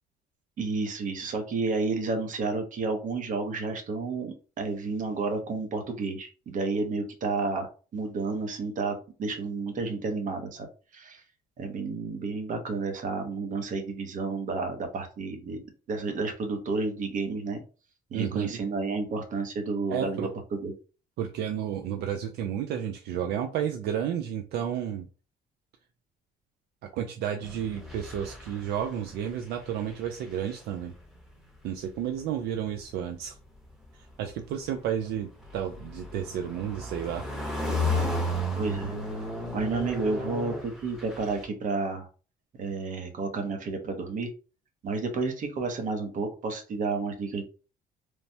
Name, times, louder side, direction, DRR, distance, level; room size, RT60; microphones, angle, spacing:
voice 1, 0.6-10.7 10.9-11.2 11.6-15.6 15.9-17.6 18.1-20.7 38.6-38.9 39.5-42.1 42.6-44.3 44.8-47.4, right 3 dB, 50° right, 5 dB, 0.9 m, -31 dB
voice 2, 18.1-18.6 19.9-20.3 21.2-25.0 26.9-30.9 31.6-33.4 33.9-37.2, right 9 dB, 75° right, 5 dB, 0.4 m, -32 dB
sound 1, 27.4-29.4 29.6-30.9 31.9-32.2 34.3-41.4, left 1 dB, ahead, 0.8 m, -33 dB
3.2 x 2.1 x 2.7 m, 0.35 s
cardioid pair, 110°, 17 cm